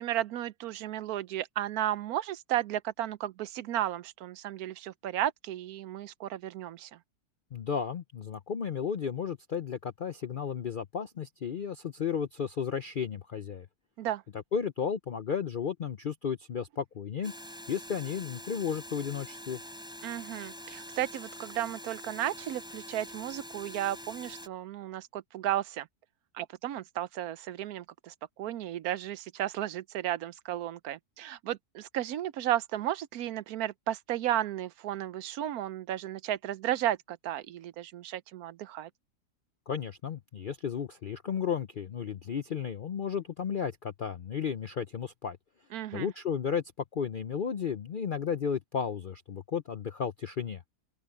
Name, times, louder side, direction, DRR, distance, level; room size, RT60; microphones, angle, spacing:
voice 1, 0.0-7.0 14.0-14.2 20.0-25.9 26.3-38.9 45.7-46.1, right 12 dB, 75° right, 1.1 m, -34 dB
voice 2, 7.5-13.7 14.5-17.3 17.7-19.6 39.7-45.4 45.9-46.6 46.9-50.6, left 7 dB, 60° left, 0.5 m, -33 dB
sound 1, 17.2-24.5, equal, 5° right, 3.6 m, -45 dB
open air
omnidirectional pair, 1.7 m